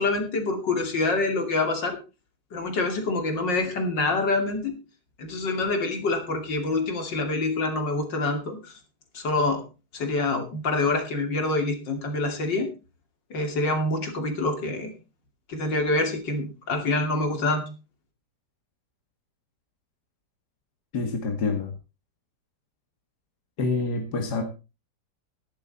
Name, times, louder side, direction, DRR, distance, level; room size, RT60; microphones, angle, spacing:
voice 1, 0.0-2.0 2.5-4.7 5.2-8.7 9.1-9.6 9.9-12.7 13.3-14.9 15.5-17.6, left 2 dB, 90° left, 5 dB, 3.3 m, -26 dB
voice 2, 20.9-21.7 23.6-24.4, left 4 dB, 65° left, 4 dB, 2.4 m, -27 dB
13.0 x 11.5 x 4.1 m, 0.31 s
omnidirectional pair, 1.9 m